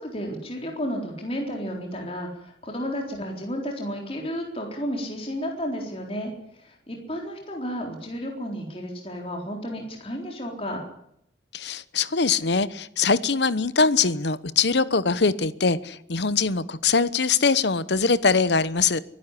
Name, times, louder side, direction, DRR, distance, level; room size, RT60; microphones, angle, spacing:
voice 1, 0.0-10.8, equal, 30° left, 1 dB, 3.9 m, -32 dB
voice 2, 11.5-19.0, left 4 dB, 70° left, 16 dB, 1.0 m, -22 dB
23.5 x 12.0 x 9.9 m, 0.75 s
head